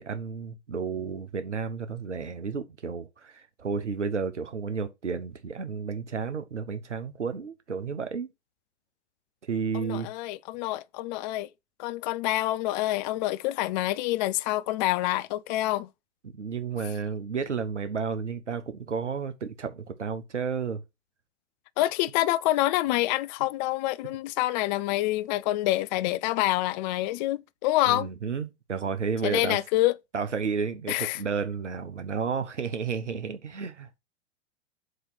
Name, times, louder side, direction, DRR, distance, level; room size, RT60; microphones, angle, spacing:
voice 1, 0.0-8.3 9.5-10.1 16.2-20.8 27.9-29.6 30.1-33.9, right 5 dB, 90° right, 1.0 m, -32 dB
voice 2, 9.7-11.5 11.8-15.9 21.8-28.1 29.2-29.9 30.9-31.2, left 16 dB, 40° left, 0.5 m, -27 dB
7.9 x 3.1 x 5.9 m
figure-of-eight pair, 100°, 35 cm